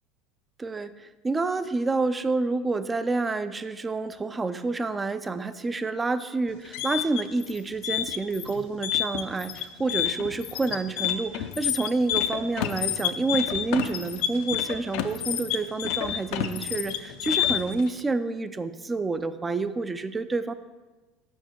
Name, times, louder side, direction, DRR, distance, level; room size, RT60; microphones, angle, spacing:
voice 1, 0.6-20.5, right 3 dB, 20° right, 13 dB, 0.4 m, -28 dB
sound 1, 6.5-17.8, left 11 dB, 70° left, 0.4 m, -29 dB
5.6 x 4.4 x 4.6 m, 1.2 s
supercardioid pair, 95°, 0 cm